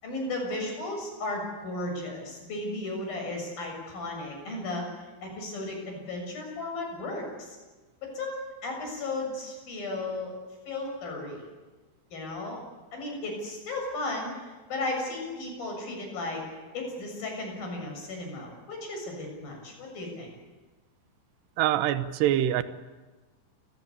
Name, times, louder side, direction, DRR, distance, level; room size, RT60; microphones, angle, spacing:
voice 1, 0.0-4.9 5.2-7.5 8.0-10.3 10.7-11.4 12.1-12.6 12.9-16.4 16.7-20.3, left 2 dB, 50° left, 2 dB, 8.6 m, -35 dB
voice 2, 21.6-22.7, right 12 dB, 75° right, 12 dB, 3.0 m, -24 dB
29.5 x 20.0 x 8.5 m, 1.2 s
omnidirectional pair, 5.4 m